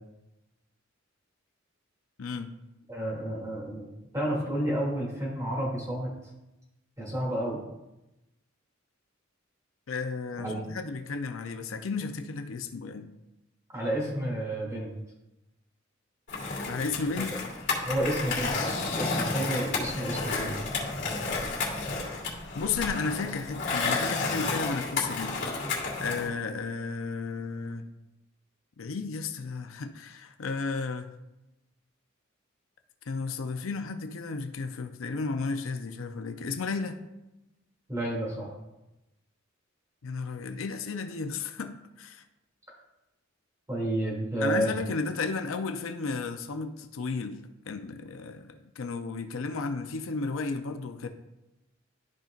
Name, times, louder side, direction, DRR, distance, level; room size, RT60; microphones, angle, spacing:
voice 1, 2.2-2.5 9.9-13.1 16.7-17.3 22.5-25.3 26.0-27.9 28.8-31.1 33.1-37.0 40.0-42.2 44.4-47.4 47.7-51.1, left 4 dB, 80° left, 7 dB, 0.6 m, -33 dB
voice 2, 2.9-6.1 7.0-7.6 10.4-10.6 13.7-14.9 17.2-17.4 17.8-20.6 37.9-38.5 43.7-44.7, right 1 dB, 15° right, -4 dB, 2.5 m, -31 dB
Skateboard, 16.3-26.3, left 3 dB, 60° left, 2.6 m, -31 dB
13.0 x 5.2 x 2.5 m, 0.95 s
head